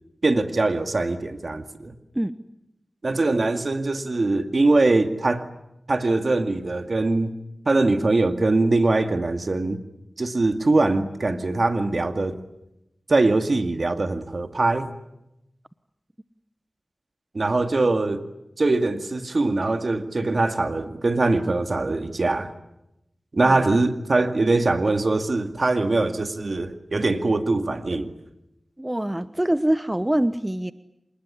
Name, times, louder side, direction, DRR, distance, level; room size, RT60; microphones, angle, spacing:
voice 1, 0.2-1.9 3.0-5.4 5.9-7.3 7.7-9.8 10.2-12.4 13.1-14.9 17.3-18.2 18.6-22.5 23.3-28.1, right 2 dB, 60° right, 8 dB, 2.3 m, -22 dB
voice 2, 23.4-23.8 28.8-30.7, right 1 dB, 15° right, 13 dB, 1.0 m, -24 dB
27.0 x 20.0 x 10.0 m, 0.88 s
cardioid pair, 40°, 0 cm